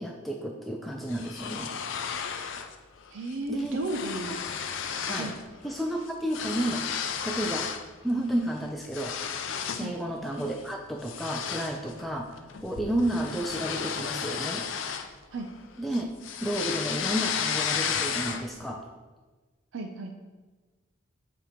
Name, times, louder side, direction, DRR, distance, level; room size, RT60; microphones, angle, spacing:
voice 1, 0.0-1.7 3.5-3.8 4.3-4.4 5.0-5.4 5.6-6.9 7.2-7.7 8.0-9.2 9.8-14.7 15.8-16.1 16.4-18.9, right 1 dB, ahead, 1 dB, 0.3 m, -31 dB
sound 1, 1.1-2.8 3.1-3.3 3.6-5.4 5.7-7.9 8.3-10.0 10.4-10.6 11.0-15.6 15.9-18.6, left 7 dB, 80° left, 0.5 m, -33 dB
voice 2, 3.1-4.4 5.1-5.3 9.8-9.9 15.3-15.5 19.7-20.1, right 2 dB, 80° right, 3 dB, 0.5 m, -34 dB
7.5 x 2.9 x 5.0 m, 1.3 s
head